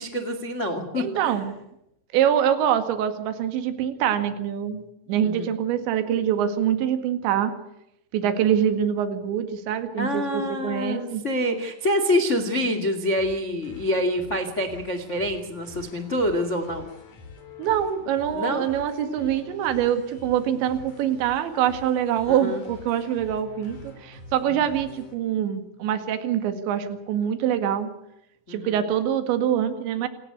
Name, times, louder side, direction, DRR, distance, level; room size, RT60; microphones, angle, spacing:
voice 1, 0.0-1.3 5.2-5.5 10.0-16.9 18.3-18.7 22.3-22.6 24.5-24.6 28.5-28.8, left 1 dB, 80° left, 8 dB, 0.6 m, -26 dB
voice 2, 1.0-1.6 2.1-7.5 8.1-11.2 17.6-27.9 28.5-30.1, right 9 dB, 70° right, 8 dB, 4.1 m, -24 dB
sound 1, 13.1-25.1, left 3 dB, 40° left, 4.6 m, -46 dB
28.0 x 15.0 x 8.1 m, 0.82 s
omnidirectional pair, 5.7 m